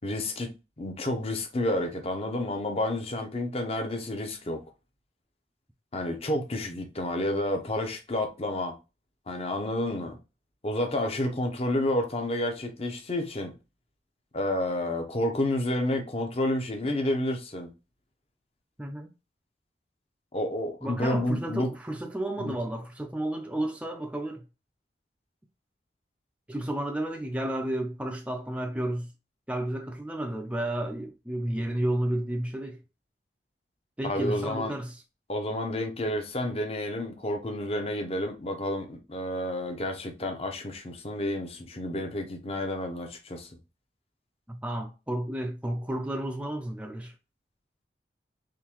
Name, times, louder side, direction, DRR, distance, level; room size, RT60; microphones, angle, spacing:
voice 1, 0.0-0.5 0.8-4.6 5.9-8.7 9.3-10.2 10.6-13.5 14.3-17.7 20.3-21.7 22.4-22.5 34.0-34.7 35.3-43.5, left 1 dB, 35° left, 0.7 m, -30 dB
voice 2, 20.8-24.4 26.5-29.1 29.5-32.8 34.0-35.0 44.5-47.1, right 1 dB, 5° right, 0.4 m, -32 dB
3.7 x 2.7 x 2.9 m
head